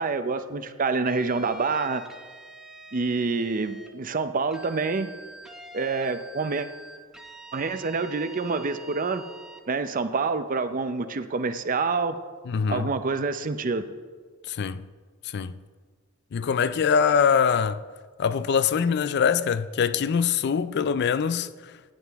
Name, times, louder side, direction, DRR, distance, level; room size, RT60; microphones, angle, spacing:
voice 1, 0.0-2.0 2.9-5.1 5.7-6.7 7.5-9.2 9.7-12.2 12.7-13.9, right 4 dB, 40° right, 0.6 m, -27 dB
sound 1, 1.1-3.9 4.5-9.7, right 2 dB, 5° right, 0.8 m, -45 dB
voice 2, 12.5-12.9 14.5-14.8 15.2-15.5 16.3-17.8 18.2-21.7, left 6 dB, 50° left, 0.4 m, -23 dB
15.0 x 9.4 x 3.5 m
head